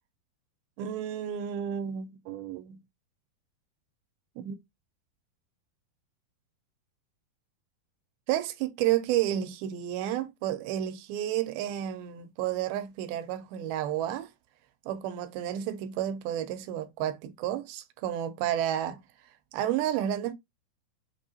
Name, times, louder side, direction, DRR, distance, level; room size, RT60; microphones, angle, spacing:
voice 1, 0.8-2.8 4.4-4.6 8.3-14.3 14.9-19.0 19.5-20.3, right 11 dB, 85° right, 2.5 m, -31 dB
6.0 x 2.8 x 2.8 m
omnidirectional pair, 4.3 m